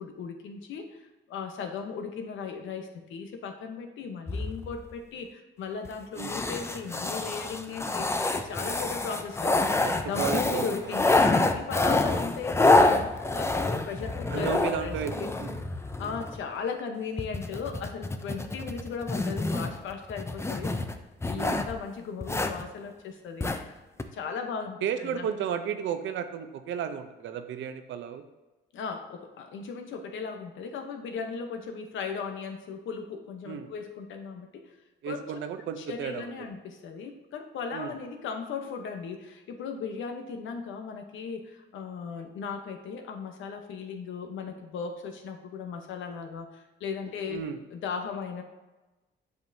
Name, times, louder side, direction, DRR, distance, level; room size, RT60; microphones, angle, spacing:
voice 1, 0.0-9.7 10.0-15.3 16.0-20.7 21.3-23.8 24.1-25.3 28.7-34.7 35.0-35.3 35.8-47.4 47.7-48.4, left 5 dB, 75° left, 5 dB, 0.9 m, -37 dB
sound 1, 4.3-4.9 5.8-5.9 6.2-16.4 17.2-21.7 22.2-22.6 23.4-23.6 24.0-24.1, left 2 dB, 15° left, 0.5 m, -27 dB
voice 2, 9.8-10.9 11.8-12.1 14.3-15.6 21.3-21.6 24.8-28.2 33.5-33.7 35.0-36.3 37.7-37.9 47.3-47.6, right 8 dB, 70° right, 8 dB, 0.6 m, -33 dB
7.9 x 5.2 x 2.7 m, 1.1 s
cardioid pair, 90°, 20 cm